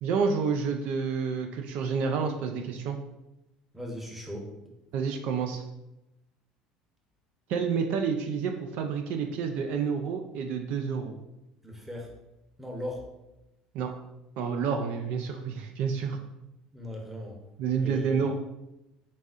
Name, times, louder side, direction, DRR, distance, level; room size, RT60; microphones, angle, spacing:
voice 1, 0.0-3.0 4.9-5.6 7.5-11.1 13.7-13.9 14.4-16.2 17.6-18.3, right 6 dB, 65° right, 4 dB, 0.4 m, -29 dB
voice 2, 3.7-4.5 11.6-12.2 12.6-13.1 16.7-17.4 17.7-18.3, equal, 5° right, 0 dB, 0.8 m, -38 dB
4.0 x 3.6 x 2.4 m, 0.94 s
supercardioid pair, 105°, 3 cm